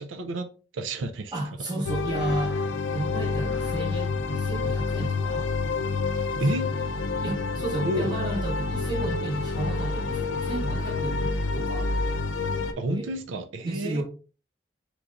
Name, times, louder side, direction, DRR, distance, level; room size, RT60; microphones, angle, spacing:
voice 1, 0.0-1.3 6.4-6.7 7.8-8.2 12.8-14.0, right 1 dB, 90° right, 0.5 m, -30 dB
voice 2, 1.3-2.6 2.9-5.5 6.3-6.8 7.2-11.9 12.9-13.1 13.6-14.0, right 1 dB, 25° right, 1.1 m, -33 dB
sound 1, 1.8-12.7, left 3 dB, 85° left, 0.5 m, -28 dB
Breathing, 2.1-3.9, left 1 dB, 5° right, 0.5 m, -44 dB
sound 2, 2.6-13.3, right 1 dB, 60° right, 1.7 m, -52 dB
4.5 x 3.9 x 2.4 m
head